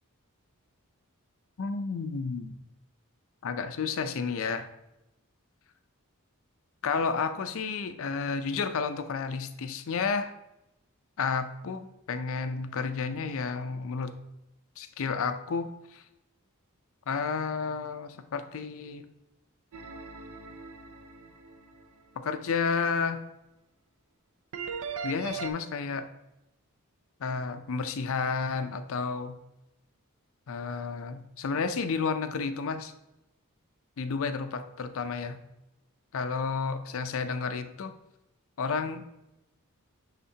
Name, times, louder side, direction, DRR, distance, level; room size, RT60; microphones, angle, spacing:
voice 1, 1.6-2.6 3.4-4.7 6.8-10.3 11.2-14.1 14.8-16.0 17.1-19.1 22.2-23.2 25.0-26.1 27.2-29.4 30.5-32.9 34.0-35.4 36.1-37.9 38.6-39.0, left 5 dB, 65° left, 9 dB, 0.5 m, -31 dB
sound 1, 19.7-21.8 24.5-25.5, right 6 dB, 70° right, 0.6 m, -39 dB
9.9 x 3.7 x 2.8 m, 0.92 s
head